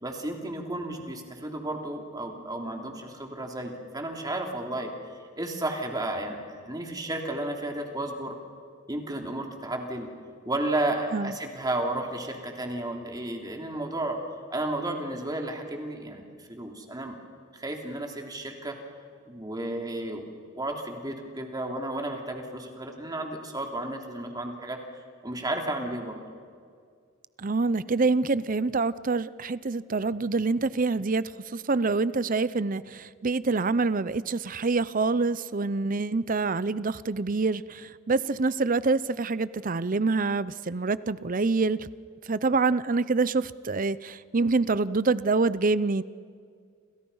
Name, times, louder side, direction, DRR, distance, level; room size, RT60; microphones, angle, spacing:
voice 1, 0.0-4.9 5.4-8.3 8.9-10.1 10.4-14.2 14.5-16.2 16.5-17.2 17.5-18.8 19.3-24.8 25.2-26.2, right 1 dB, 20° right, 2 dB, 3.1 m, -33 dB
voice 2, 27.4-31.2 31.5-41.9 42.3-46.0, right 3 dB, 40° right, 17 dB, 0.6 m, -26 dB
29.5 x 27.5 x 5.6 m, 2.1 s
head